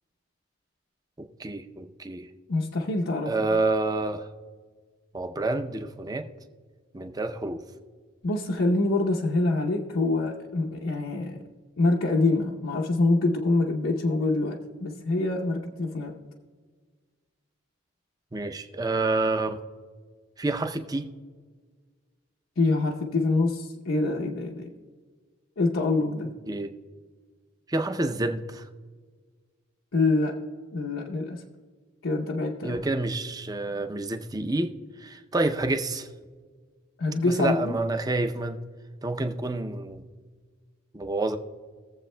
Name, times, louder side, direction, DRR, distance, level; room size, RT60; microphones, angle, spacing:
voice 1, 1.2-2.3 3.3-4.3 5.1-6.3 6.9-7.6 18.3-19.6 20.4-21.1 26.5-26.7 27.7-28.6 32.6-34.7 35.0-36.1 37.2-38.6 39.0-40.0 40.9-41.4, right 2 dB, 20° right, 7 dB, 0.5 m, -28 dB
voice 2, 2.5-3.3 8.2-11.4 11.8-16.1 22.6-24.7 25.6-26.3 29.9-30.4 30.7-31.4 32.0-32.8 37.0-37.8, left 2 dB, 80° left, -1 dB, 0.8 m, -25 dB
22.0 x 7.5 x 2.2 m, 1.5 s
head